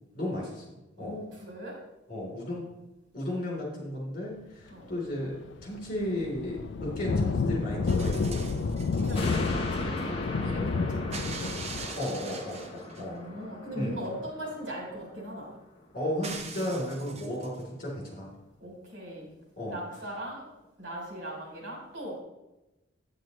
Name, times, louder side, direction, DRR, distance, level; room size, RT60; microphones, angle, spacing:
voice 1, 0.1-0.6 1.0-1.2 2.1-2.6 3.1-5.3 5.6-8.4 9.1-9.3 12.0-13.2 13.7-14.0 15.9-18.3 19.6-19.8, left 1 dB, 45° left, -3 dB, 3.5 m, -34 dB
voice 2, 1.0-1.8 4.7-4.9 8.6-11.9 12.9-15.5 16.6-16.8 18.6-19.3 19.7-20.5 20.8-22.2, equal, 75° right, -2 dB, 3.5 m, -40 dB
sound 1, 5.2-5.4 5.6-11.9, left 4 dB, 70° left, 0.4 m, -30 dB
sound 2, 7.9-9.4 11.1-13.1 16.2-17.6 18.9-19.0, right 4 dB, 35° right, 0.7 m, -42 dB
sound 3, 9.1-15.8 16.2-16.3, left 2 dB, 30° left, 1.1 m, -39 dB
9.1 x 8.8 x 3.2 m, 1.0 s
head